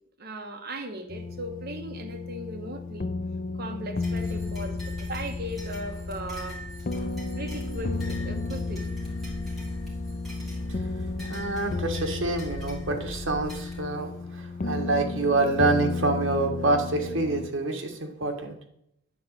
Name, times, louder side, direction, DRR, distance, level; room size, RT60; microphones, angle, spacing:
voice 1, 0.2-3.1 3.6-6.6 7.3-8.9, right 1 dB, 45° right, 5 dB, 1.1 m, -38 dB
sound 1, 1.1-17.5, left 3 dB, 40° left, 0.5 m, -34 dB
sound 2, 4.0-13.8, left 1 dB, ahead, 2.4 m, -38 dB
voice 2, 11.2-18.6, right 2 dB, 65° right, 4 dB, 1.4 m, -27 dB
9.5 x 3.9 x 7.2 m, 0.77 s
head